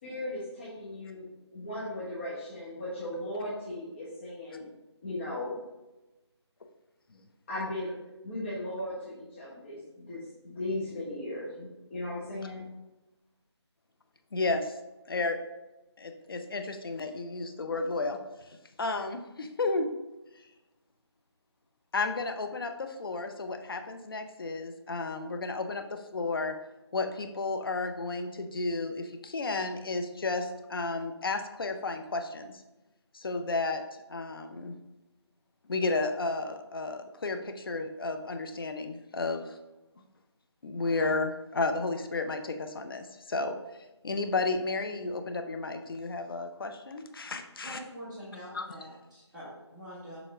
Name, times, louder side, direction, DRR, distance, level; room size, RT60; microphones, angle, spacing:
voice 1, 0.0-4.6 5.0-5.6 7.5-7.9 8.2-12.7, left 1 dB, 25° left, -9 dB, 1.2 m, -37 dB
voice 2, 14.3-14.8 15.1-15.4 16.0-18.2 18.8-19.9 21.9-26.6 26.9-32.6 33.1-33.8 34.1-34.7 35.7-39.6 40.6-43.6 44.0-47.8 48.5-48.7, left 3 dB, 50° left, 6 dB, 0.7 m, -32 dB
voice 3, 47.6-48.8 49.1-50.2, equal, 5° right, -13 dB, 1.2 m, -44 dB
7.0 x 3.6 x 3.7 m, 1.0 s
figure-of-eight pair, 165°, 15 cm